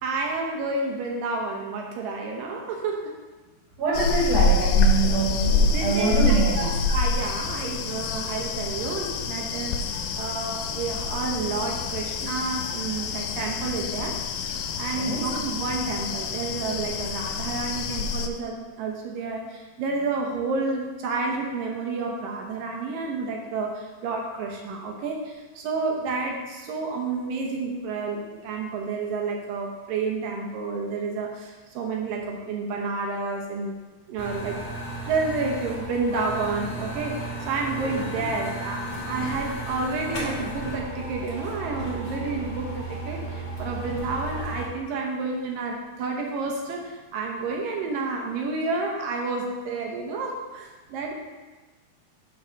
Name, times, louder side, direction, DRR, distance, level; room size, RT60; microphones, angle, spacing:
voice 1, 0.0-3.1 5.7-33.8 34.1-34.6 35.1-51.1, right 3 dB, 75° right, 0 dB, 2.2 m, -30 dB
voice 2, 3.8-6.7 15.0-15.3, right 4 dB, 55° right, -3 dB, 2.1 m, -25 dB
sound 1, 3.9-18.3, left 3 dB, 85° left, 2.7 m, -26 dB
sound 2, 34.2-44.7, right 1 dB, 30° left, 2.0 m, -34 dB
7.9 x 4.4 x 6.2 m, 1.3 s
omnidirectional pair, 4.7 m